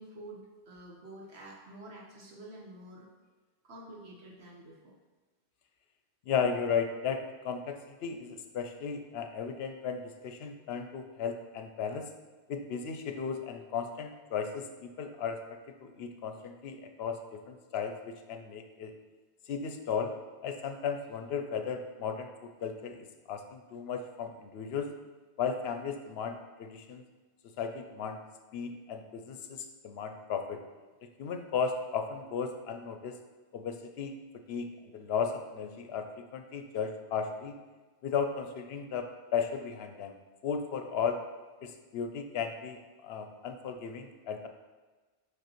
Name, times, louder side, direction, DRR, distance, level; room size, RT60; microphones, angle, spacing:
voice 1, 0.0-3.1 3.6-4.9, right 1 dB, 75° right, -3 dB, 1.4 m, -48 dB
voice 2, 6.3-12.1 12.5-18.9 19.5-20.1 20.4-24.9 25.4-27.0 27.6-28.2 28.5-30.6 31.2-33.2 33.5-34.2 34.5-34.7 34.9-37.6 38.0-40.2 40.4-41.2 41.6-44.5, left 6 dB, 70° left, 6 dB, 0.8 m, -35 dB
6.1 x 5.2 x 3.0 m, 1.3 s
omnidirectional pair, 1.1 m